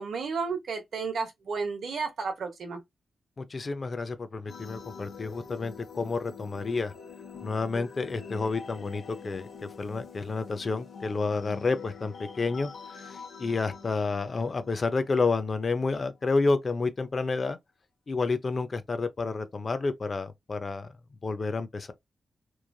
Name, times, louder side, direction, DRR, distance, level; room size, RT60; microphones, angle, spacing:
voice 1, 0.0-2.8, right 5 dB, 70° right, 0.9 m, -32 dB
voice 2, 3.4-6.9 7.4-12.7 13.0-17.6 18.1-20.9 21.2-21.9, left 3 dB, 35° left, 0.4 m, -30 dB
sound 1, 4.5-16.0, left 5 dB, 65° left, 0.9 m, -45 dB
3.0 x 2.4 x 2.2 m
wide cardioid pair, 150°, 0 cm